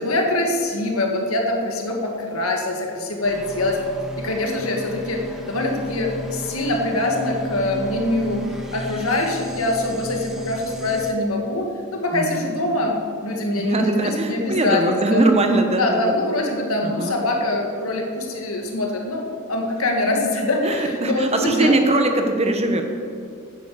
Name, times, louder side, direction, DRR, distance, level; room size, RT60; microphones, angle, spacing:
voice 1, 0.0-3.8 4.2-8.4 8.7-14.8 15.1-15.2 15.8-21.8, left 2 dB, 80° left, 1 dB, 1.9 m, -24 dB
sound 1, 3.2-11.1, right 1 dB, ahead, 1.2 m, -35 dB
voice 2, 12.1-12.5 13.6-16.1 16.8-17.2 20.6-22.8, right 2 dB, 30° right, 5 dB, 1.1 m, -21 dB
9.8 x 9.3 x 7.1 m, 2.3 s
head